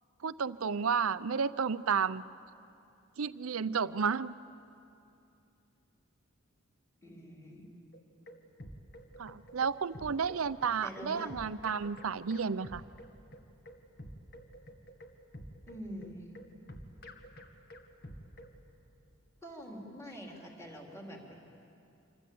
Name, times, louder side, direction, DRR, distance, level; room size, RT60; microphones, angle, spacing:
voice 1, 0.2-2.2 3.2-4.3 9.2-12.8, right 6 dB, 80° right, 15 dB, 0.6 m, -32 dB
voice 2, 7.0-7.6 10.8-11.3 15.7-16.2 19.4-21.3, equal, 15° left, -1 dB, 3.7 m, -45 dB
sound 1, 7.9-18.6, equal, 50° left, 2.0 m, -49 dB
26.5 x 26.0 x 8.6 m, 2.7 s
head